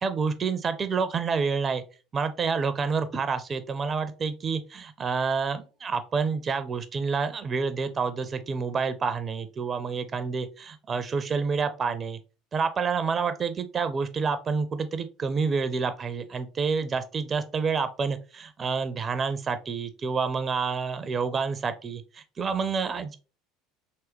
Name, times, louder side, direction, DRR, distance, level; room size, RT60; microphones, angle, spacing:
voice 1, 0.0-1.8 2.1-12.2 12.5-23.2, right 5 dB, 30° right, 11 dB, 0.4 m, -28 dB
3.4 x 2.9 x 3.0 m, 0.34 s
figure-of-eight pair, 70°, 0 cm